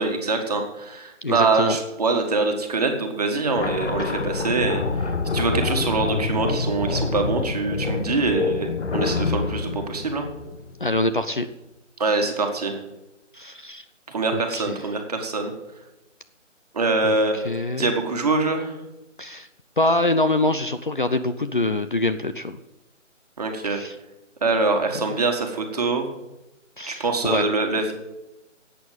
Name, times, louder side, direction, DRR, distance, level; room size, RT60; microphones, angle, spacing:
voice 1, 0.0-10.3 12.0-12.8 14.1-15.5 16.7-17.5 17.8-18.8 23.4-23.8 24.4-26.1 26.9-27.9, right 3 dB, 30° right, 4 dB, 1.7 m, -24 dB
voice 2, 1.2-1.8 10.8-11.5 13.3-13.8 14.3-14.8 17.0-17.9 19.2-19.5 19.8-22.6 23.7-24.0 24.9-25.2 26.8-27.5, left 2 dB, 40° left, 10 dB, 0.6 m, -25 dB
sound 1, 3.6-11.0, left 4 dB, 60° left, 1.4 m, -27 dB
11.5 x 8.5 x 9.2 m, 0.97 s
hypercardioid pair, 175°, 38 cm